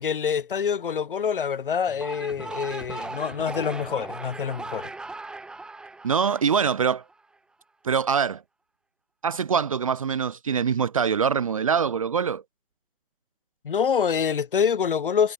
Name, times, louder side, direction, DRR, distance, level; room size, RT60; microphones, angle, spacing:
voice 1, 0.0-4.9 13.6-15.3, left 7 dB, 35° left, 5.1 m, -26 dB
sound 1, 1.9-7.2, right 3 dB, ahead, 6.6 m, -38 dB
voice 2, 6.0-7.0 7.8-8.4 9.2-12.4, right 6 dB, 25° right, 1.7 m, -24 dB
hypercardioid pair, 170°, 45 cm